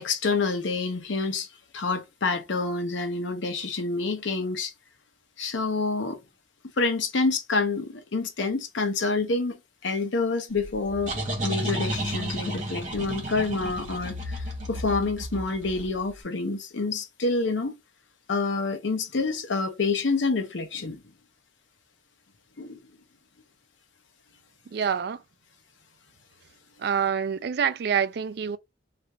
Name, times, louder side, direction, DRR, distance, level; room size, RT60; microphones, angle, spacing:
voice 1, 0.0-1.5 1.7-4.7 5.4-6.2 6.8-9.6 9.8-11.1 11.4-17.7 18.3-21.0 22.6-22.8, left 3 dB, 70° left, 0.7 m, -27 dB
sound 1, 10.6-16.1, right 1 dB, 40° right, 1.0 m, -32 dB
voice 2, 24.7-25.2 26.8-28.6, right 7 dB, 55° right, 0.3 m, -26 dB
3.3 x 2.5 x 2.9 m
head